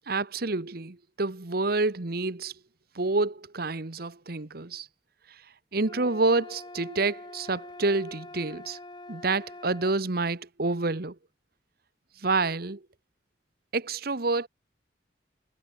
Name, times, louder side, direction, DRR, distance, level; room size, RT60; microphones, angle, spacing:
voice 1, 0.1-2.5 2.9-4.9 5.3-5.4 5.7-8.8 9.1-11.2 12.2-12.8 13.7-14.5, right 3 dB, 55° right, 1.2 m, -28 dB
sound 1, 5.8-10.0, left 2 dB, 25° left, 6.6 m, -45 dB
head